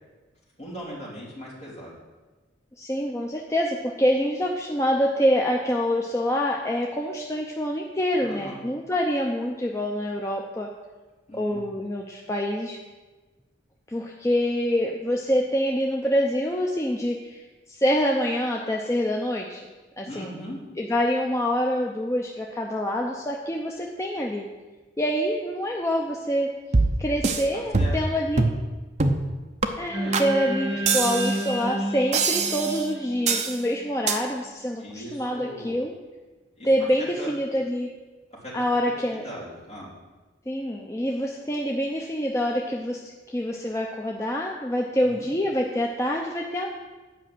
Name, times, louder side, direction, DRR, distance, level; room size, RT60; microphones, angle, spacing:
voice 1, 0.6-2.0 8.1-8.6 11.3-11.6 20.1-20.6 27.5-28.0 29.7-30.2 34.8-35.7 36.6-36.7 37.2-37.3 38.4-39.9 45.0-45.3, equal, 35° left, -7 dB, 3.3 m, -39 dB
voice 2, 2.8-10.7 11.3-12.8 13.9-17.4 17.7-19.6 20.0-20.3 20.8-24.5 25.0-26.5 27.0-28.5 29.8-35.9 36.6-37.9 38.5-39.2 40.5-43.0 43.3-46.7, equal, 15° left, 0 dB, 0.5 m, -26 dB
sound 1, 26.7-27.4 27.7-28.1 28.4-28.6 29.0-29.3 29.6-29.7 30.1-30.3 30.9-31.5 32.1-32.8 33.3-33.6 34.1-34.2, right 3 dB, 35° right, 0.6 m, -23 dB
sound 2, 29.9-34.3, right 1 dB, 10° right, 2.3 m, -30 dB
9.1 x 5.4 x 7.6 m, 1.3 s
head